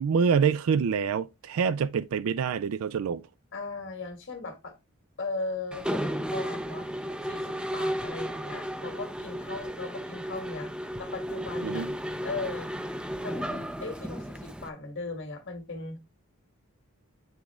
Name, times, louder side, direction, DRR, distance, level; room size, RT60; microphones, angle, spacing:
voice 1, 0.0-3.2 11.6-11.9, right 6 dB, 70° right, 0.4 m, -26 dB
voice 2, 3.5-4.7 5.2-6.9 7.2-11.9 12.2-12.7 13.2-16.0, left 3 dB, 55° left, 1.7 m, -38 dB
Mechanisms, 5.7-14.7, equal, 5° right, 0.5 m, -34 dB
9.0 x 3.6 x 3.4 m
head